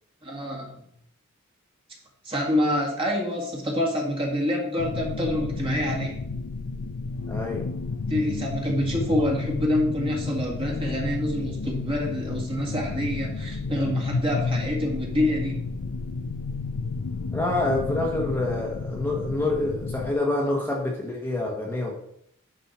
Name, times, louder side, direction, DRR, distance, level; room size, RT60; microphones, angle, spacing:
voice 1, 0.2-0.8 2.2-6.2 8.1-15.6, left 1 dB, 25° right, -1 dB, 1.9 m, -27 dB
sound 1, 4.8-20.1, left 4 dB, 75° left, 0.5 m, -31 dB
voice 2, 7.3-7.7 17.3-21.9, left 2 dB, 10° left, -2 dB, 1.2 m, -27 dB
10.0 x 5.5 x 4.3 m, 0.71 s
head